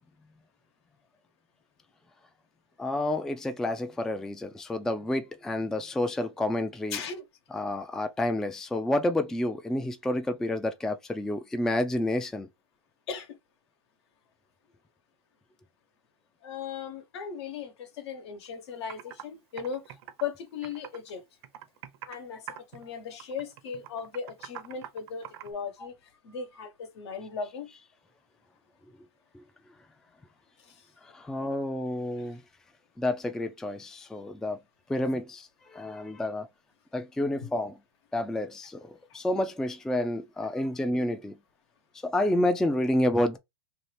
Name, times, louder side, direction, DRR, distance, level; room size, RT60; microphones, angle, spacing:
voice 1, 2.8-7.0 7.5-12.5 29.3-29.4 31.0-32.4 33.0-34.6 34.9-36.5 36.9-37.7 38.1-41.4 42.0-43.4, left 1 dB, 5° left, 0.3 m, -29 dB
voice 2, 6.9-7.2 13.1-13.4 16.4-21.2 22.1-25.9 26.2-27.7 30.6-30.9 32.2-32.3 39.1-39.2, left 6 dB, 70° left, 1.1 m, -38 dB
Computer keyboard, 18.4-18.5 18.9-19.2 19.6-21.1 21.4-22.2 22.5-22.9 23.2-25.5, right 11 dB, 60° right, 0.7 m, -43 dB
2.7 x 2.4 x 3.2 m
hypercardioid pair, 120°, 15 cm